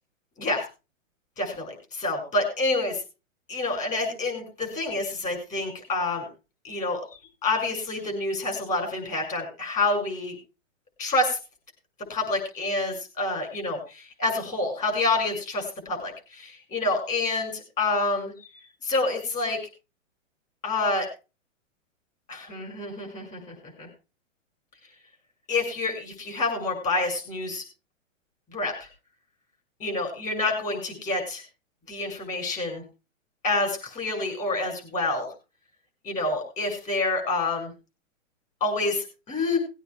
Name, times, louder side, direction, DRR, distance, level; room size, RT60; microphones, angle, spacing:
voice 1, 1.4-3.0 3.5-6.3 6.6-7.0 7.4-10.3 11.0-11.4 12.1-18.3 18.8-19.6 20.6-21.1 22.3-23.9 25.5-27.6 28.5-28.7 29.8-31.4 31.9-32.8 33.4-35.3 36.0-37.7 38.6-39.6, left 2 dB, 20° left, 3 dB, 6.9 m, -28 dB
20.0 x 9.2 x 3.6 m, 0.30 s
hypercardioid pair, 145°, 39 cm